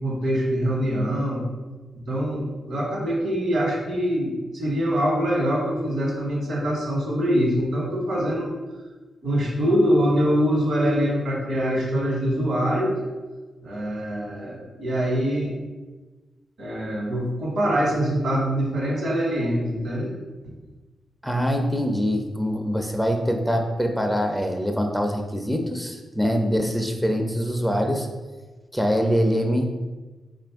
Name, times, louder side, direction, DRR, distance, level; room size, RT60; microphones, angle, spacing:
voice 1, 0.0-1.4 2.1-8.5 9.2-13.0 13.6-15.6 16.6-20.1 20.4-20.5, equal, 75° right, -3 dB, 1.3 m, -24 dB
voice 2, 21.2-28.1 28.7-29.7, equal, 5° left, 3 dB, 0.5 m, -24 dB
4.1 x 2.5 x 3.5 m, 1.2 s
supercardioid pair, 45°, 0 cm